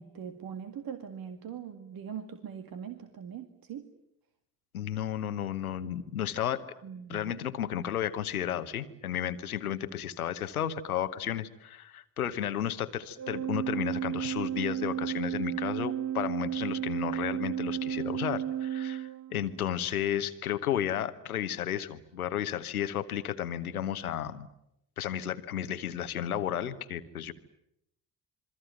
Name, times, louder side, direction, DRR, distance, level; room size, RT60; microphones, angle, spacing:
voice 1, 0.0-3.9 6.8-7.4, right 8 dB, 55° right, 7 dB, 2.0 m, -41 dB
voice 2, 4.7-6.6 7.1-24.5 25.0-27.3, left 10 dB, 85° left, 12 dB, 1.1 m, -33 dB
Organ, 13.2-19.7, right 10 dB, 35° right, 1.0 m, -33 dB
27.5 x 23.0 x 9.2 m, 0.80 s
figure-of-eight pair, 45°, 43 cm